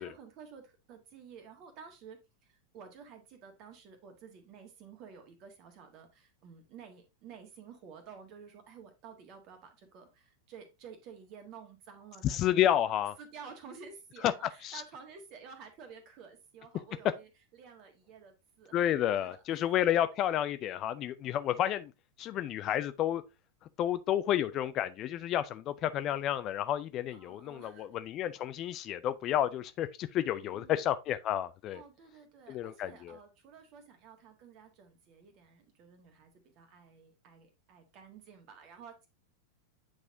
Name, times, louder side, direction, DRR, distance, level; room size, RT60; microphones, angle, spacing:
voice 1, 0.0-12.8 13.2-17.3 17.6-18.8 19.1-19.6 25.9-26.1 27.1-27.9 30.4-30.8 31.7-39.1, right 6 dB, 40° right, 1.6 m, -52 dB
voice 2, 12.2-13.1 14.2-14.3 14.6-14.8 18.7-21.9 22.2-23.2 23.8-31.8 32.5-33.2, left 11 dB, 35° left, 0.4 m, -30 dB
8.7 x 4.1 x 2.7 m
figure-of-eight pair, 90°, 0 cm